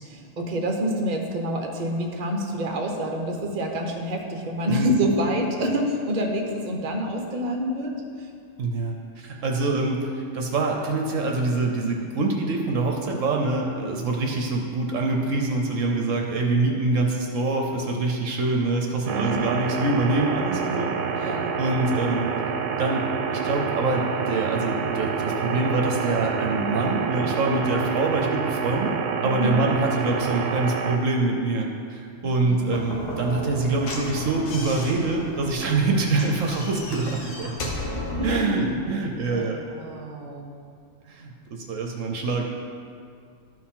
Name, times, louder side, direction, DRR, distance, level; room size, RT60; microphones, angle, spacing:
voice 1, 0.0-7.9 19.0-19.4 21.2-21.5 29.2-29.6 32.2-32.6 38.1-38.8 39.3-39.5 39.8-40.5, equal, 40° right, 2 dB, 0.7 m, -27 dB
voice 2, 8.6-22.2 22.8-29.0 29.2-37.6 38.2-39.6 41.1-42.4, right 3 dB, 60° right, 1 dB, 1.0 m, -25 dB
sound 1, 19.1-31.0, right 6 dB, 90° right, 1.2 m, -28 dB
Slam / Knock, 32.6-38.5, left 1 dB, 85° left, 1.6 m, -33 dB
12.5 x 4.6 x 3.7 m, 2.3 s
omnidirectional pair, 1.7 m